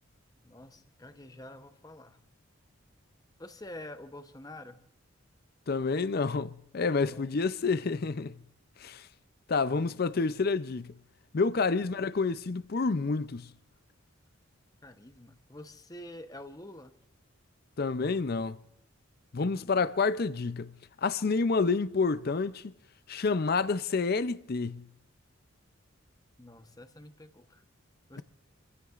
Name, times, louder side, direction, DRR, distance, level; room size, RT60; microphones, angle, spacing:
voice 1, 0.4-2.2 3.4-4.8 7.0-7.3 9.6-10.0 14.8-16.9 19.6-19.8 26.4-27.6 28.1-28.2, left 1 dB, 15° left, 0.8 m, -47 dB
voice 2, 5.7-8.4 8.8-9.1 9.5-10.9 11.3-13.5 17.8-18.6 19.3-20.7 21.0-22.7 23.1-24.8, left 4 dB, 45° left, 0.5 m, -29 dB
28.5 x 15.5 x 2.5 m
head